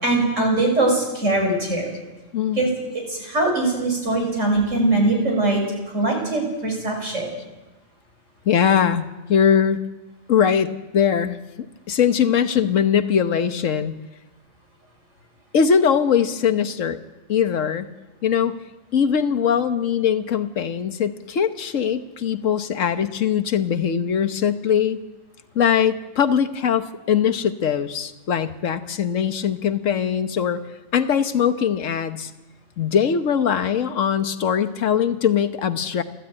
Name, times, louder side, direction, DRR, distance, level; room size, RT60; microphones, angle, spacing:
voice 1, 0.0-1.9 2.6-2.7 2.9-5.6 5.9-7.3, right 2 dB, 55° right, 1 dB, 6.5 m, -21 dB
voice 2, 2.3-2.7 8.4-9.8 10.3-13.9 15.5-17.0 17.3-17.9 18.2-18.5 18.9-25.0 25.5-30.6 30.9-32.3 32.8-36.0, left 8 dB, 65° left, 9 dB, 1.5 m, -21 dB
29.5 x 13.0 x 8.9 m, 1.1 s
omnidirectional pair, 1.5 m